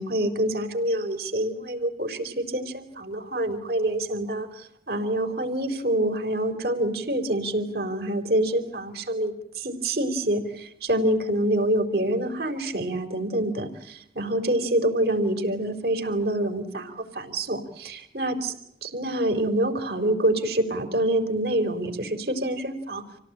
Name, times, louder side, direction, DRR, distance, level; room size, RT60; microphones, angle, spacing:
voice 1, 0.0-18.5 18.8-23.0, right 1 dB, 65° right, 5 dB, 4.3 m, -26 dB
28.0 x 17.5 x 8.9 m, 0.76 s
head